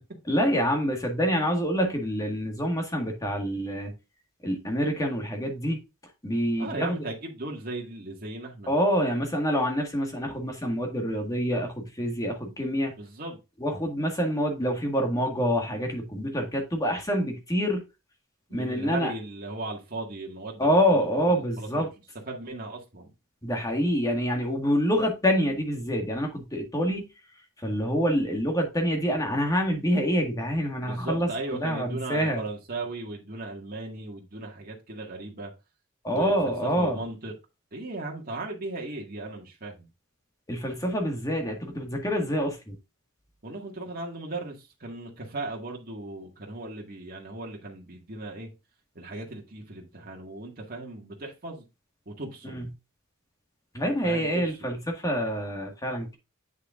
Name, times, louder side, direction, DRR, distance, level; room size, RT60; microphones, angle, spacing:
voice 1, 0.3-3.9 4.4-5.8 6.2-7.0 8.7-12.9 13.6-17.8 18.5-19.1 20.6-21.9 23.4-27.1 27.6-32.4 36.0-37.0 40.5-42.7 52.4-52.6 53.7-56.2, equal, 15° left, 1.8 m, -26 dB
voice 2, 6.6-8.7 13.0-13.4 18.5-21.9 22.3-23.1 30.8-35.5 36.1-37.3 37.7-39.9 43.4-48.5 49.0-51.6 52.1-52.7 54.0-54.6, right 2 dB, 45° right, 1.9 m, -37 dB
8.2 x 6.5 x 2.5 m
head